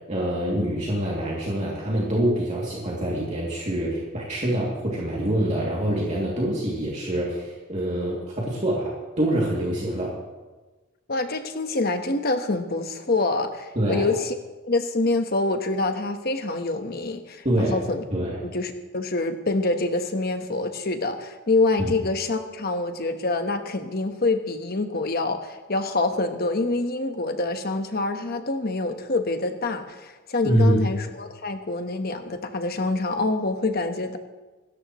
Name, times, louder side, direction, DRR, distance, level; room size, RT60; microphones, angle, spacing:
voice 1, 0.1-8.9 9.2-10.1 13.7-14.1 17.4-17.8 18.1-18.4 21.8-21.9 30.4-30.8, right 1 dB, 35° right, -5 dB, 2.8 m, -25 dB
voice 2, 11.1-14.3 14.7-18.0 18.4-34.2, left 2 dB, 50° left, 7 dB, 1.3 m, -26 dB
26.5 x 13.5 x 3.1 m, 1.2 s
head